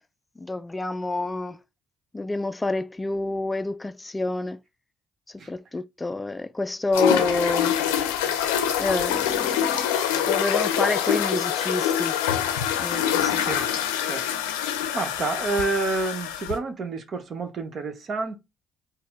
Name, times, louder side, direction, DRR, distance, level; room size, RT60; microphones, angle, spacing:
voice 1, 0.4-1.6 2.1-4.6 5.5-7.8 8.8-9.9 10.2-12.2 12.8-13.5, left 2 dB, 20° left, 0.3 m, -28 dB
sound 1, 6.9-16.6, left 9 dB, 90° left, 0.5 m, -25 dB
voice 2, 13.3-13.7 14.0-18.4, right 3 dB, 55° right, 1.0 m, -29 dB
4.3 x 2.1 x 3.6 m
hypercardioid pair, 55°, 0 cm